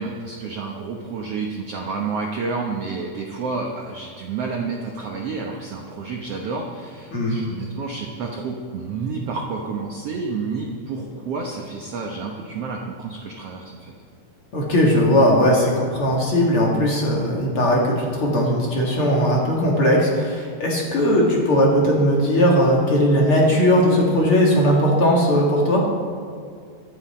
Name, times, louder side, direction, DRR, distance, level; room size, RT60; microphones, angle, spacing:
voice 1, 0.0-13.9, right 4 dB, 85° right, 0 dB, 1.3 m, -30 dB
voice 2, 14.5-25.8, equal, 40° left, -3 dB, 2.4 m, -18 dB
24.0 x 8.1 x 4.4 m, 2.1 s
omnidirectional pair, 4.4 m